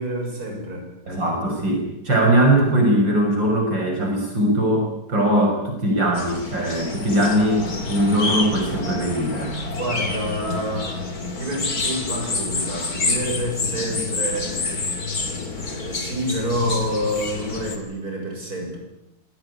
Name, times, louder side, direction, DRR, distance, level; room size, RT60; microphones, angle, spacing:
voice 1, 0.0-0.9 9.8-14.5 15.6-18.8, equal, 55° right, 1 dB, 7.5 m, -28 dB
voice 2, 1.1-9.5, right 1 dB, 85° right, 1 dB, 6.8 m, -20 dB
sound 1, 6.2-17.8, left 3 dB, 55° left, 3.5 m, -28 dB
26.0 x 18.0 x 9.9 m, 0.88 s
omnidirectional pair, 2.0 m